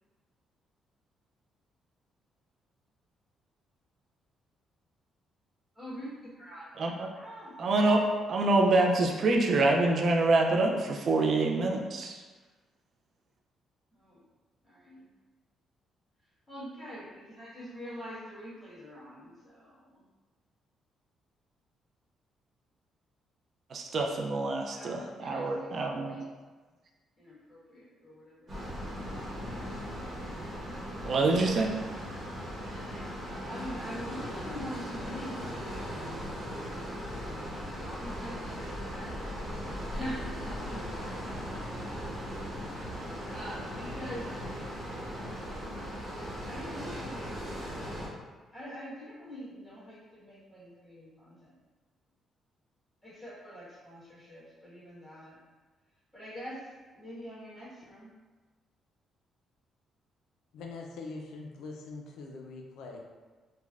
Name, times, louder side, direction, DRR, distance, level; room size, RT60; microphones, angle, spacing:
voice 1, 5.7-6.1 6.3-6.6 7.1-7.5 12.4-12.5 13.9-14.2 14.6-15.1 16.5-20.0 24.7-26.2 27.2-28.6 32.4-33.1 33.5-39.3 39.7-44.4 46.4-48.0 48.5-51.5 53.0-55.4 56.1-56.6 56.9-58.1, equal, 5° left, -11 dB, 1.4 m, -45 dB
voice 2, 6.8-7.1 7.6-8.0 8.3-12.2 23.7-26.2 31.0-31.7, right 2 dB, 50° right, 1 dB, 0.3 m, -26 dB
sound 1, 28.5-48.1, equal, 35° right, 1.0 m, -38 dB
voice 3, 60.5-63.1, left 3 dB, 85° left, 1 dB, 0.3 m, -43 dB
3.1 x 2.1 x 2.4 m, 1.3 s
cardioid pair, 90°, 0 cm